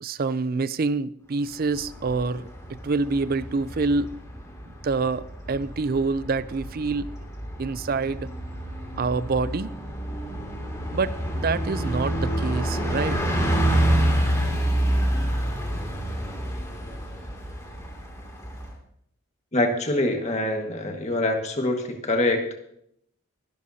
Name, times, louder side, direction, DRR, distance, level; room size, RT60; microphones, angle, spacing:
voice 1, 0.0-4.2 4.8-7.1 7.6-8.3 9.0-9.7 10.9-13.2, right 4 dB, 45° right, 0.4 m, -26 dB
Bus, 1.7-18.7, right 1 dB, 15° left, 2.5 m, -28 dB
voice 2, 19.5-22.4, left 1 dB, 30° left, 1.6 m, -24 dB
21.5 x 11.5 x 2.8 m
head